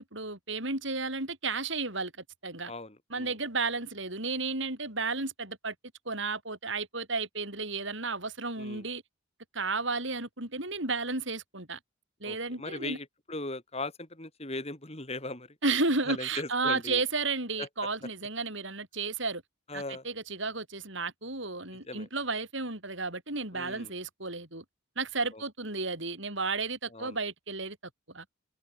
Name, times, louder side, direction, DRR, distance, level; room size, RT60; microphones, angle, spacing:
voice 1, 0.0-2.1 2.4-2.7 3.1-5.7 6.1-9.0 9.5-11.8 12.2-13.0 15.6-19.4 19.7-24.6 25.0-27.8 28.1-28.2, right 3 dB, 60° right, 7.4 m, -33 dB
voice 2, 2.7-3.3 8.6-8.8 12.2-15.6 16.1-17.0 17.6-17.7 19.7-20.0 21.7-22.1 23.5-23.9 25.3-25.4 26.9-27.2, left 2 dB, 30° left, 3.5 m, -39 dB
open air
head